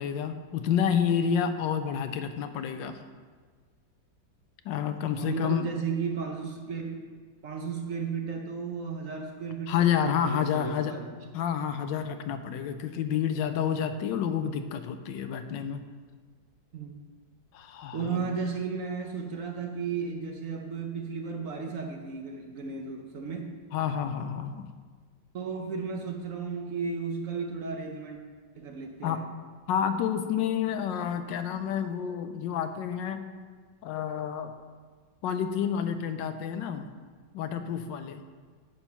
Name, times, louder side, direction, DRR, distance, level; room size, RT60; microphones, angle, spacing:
voice 1, 0.0-3.0 4.6-5.7 9.7-10.9 11.3-15.8 17.5-18.3 23.7-24.7 29.0-29.2 29.7-33.2 33.8-34.5 35.2-36.9 37.3-38.2, left 8 dB, 75° left, 9 dB, 1.2 m, -29 dB
voice 2, 5.2-7.0 7.4-11.2 16.7-16.9 17.9-23.5 25.3-28.2 28.6-29.2, right 5 dB, 60° right, 3 dB, 0.9 m, -34 dB
9.8 x 4.5 x 5.6 m, 1.5 s
omnidirectional pair, 2.1 m